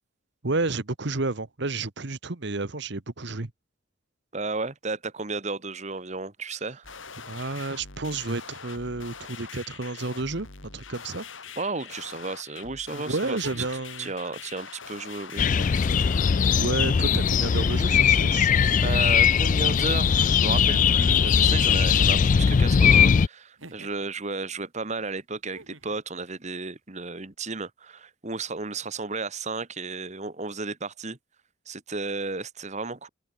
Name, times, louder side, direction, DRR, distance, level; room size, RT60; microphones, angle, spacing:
voice 1, 0.4-3.5 7.3-10.5 10.7-11.2 12.9-14.1 16.2-18.5, right 3 dB, 60° right, 1.3 m, -31 dB
voice 2, 4.3-6.9 11.6-13.5 14.0-15.5 18.8-31.2 31.7-33.1, right 3 dB, 35° right, 1.6 m, -33 dB
sound 1, 6.8-16.6, left 6 dB, 70° left, 5.2 m, -43 dB
sound 2, 12.1-12.2 13.2-13.9 15.3-16.0 17.3-18.0 19.2-20.0 21.4-22.1 23.6-24.1 25.4-26.0 27.3-27.4, right 3 dB, 80° right, 3.5 m, -46 dB
sound 3, 15.4-23.3, left 7 dB, 40° left, 0.3 m, -20 dB
open air
head